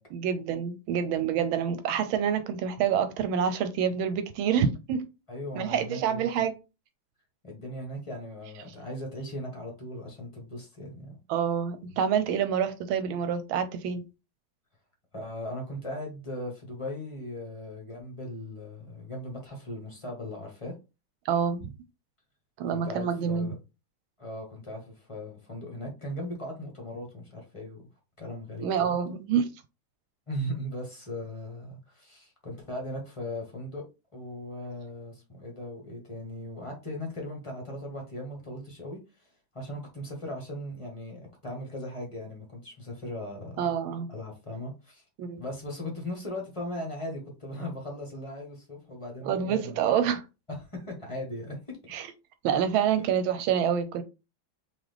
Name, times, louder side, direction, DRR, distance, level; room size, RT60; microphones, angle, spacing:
voice 1, 0.1-5.0 5.5-6.5 11.3-14.0 21.2-21.7 22.6-23.5 28.6-29.5 43.6-44.1 45.2-45.4 49.2-50.2 51.9-52.1 52.4-54.0, right 8 dB, 85° right, 1.4 m, -27 dB
voice 2, 5.3-6.3 7.4-11.2 15.1-20.7 22.7-23.5 24.2-27.8 28.2-29.0 30.3-33.8 34.1-39.3 39.5-43.6 44.1-45.0 45.4-49.8 50.6-51.6 51.8-51.9, left 1 dB, 20° left, 1.0 m, -38 dB
4.0 x 3.1 x 3.3 m
omnidirectional pair, 2.2 m